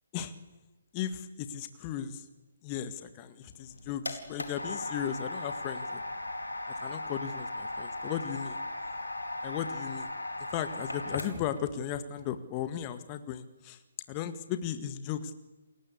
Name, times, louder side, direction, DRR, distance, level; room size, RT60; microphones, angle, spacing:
voice 1, 0.9-2.2 2.6-6.0 6.8-8.6 9.4-10.1 10.5-13.8 14.1-15.3, left 9 dB, 25° left, 10 dB, 1.8 m, -36 dB
sound 1, 3.5-11.6, left 2 dB, 80° left, 4.5 m, -37 dB
29.5 x 21.5 x 8.4 m, 1.1 s
figure-of-eight pair, 140°, 0 cm